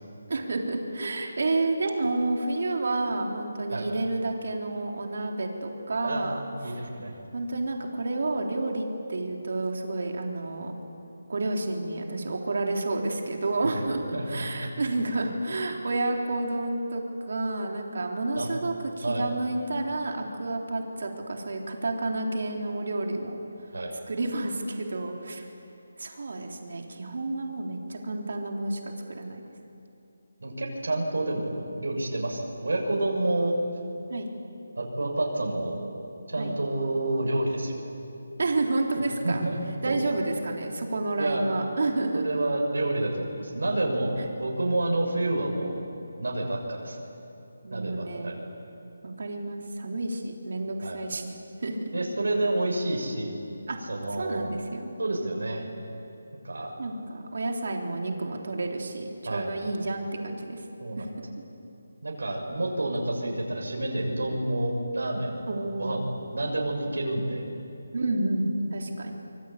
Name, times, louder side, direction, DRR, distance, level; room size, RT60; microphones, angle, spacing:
voice 1, 0.3-6.4 6.8-6.9 7.3-10.7 11.3-23.4 24.1-25.4 26.0-29.4 34.1-34.3 36.4-36.6 38.4-39.5 39.8-42.3 44.2-44.3 47.6-48.3 49.0-51.3 51.6-51.8 53.7-53.8 54.2-54.9 55.2-55.3 56.8-60.6 61.0-61.3 65.5-66.0 67.9-69.1, right 2 dB, 45° right, 1 dB, 3.7 m, -30 dB
voice 2, 6.0-7.1 13.6-13.8 14.1-14.2 18.3-18.5 19.0-19.2 23.7-23.9 30.4-33.6 34.8-35.9 36.3-37.9 39.2-39.6 39.9-40.1 41.2-41.4 42.1-45.8 46.2-47.1 47.7-48.4 50.8-51.0 51.9-53.4 53.9-54.5 55.0-55.7 56.4-56.7 59.3-59.5 60.8-61.0 62.0-65.5 65.8-67.4, right 2 dB, 85° right, 0 dB, 7.1 m, -29 dB
25.5 x 25.0 x 8.7 m, 2.8 s
hypercardioid pair, 180°, 0 cm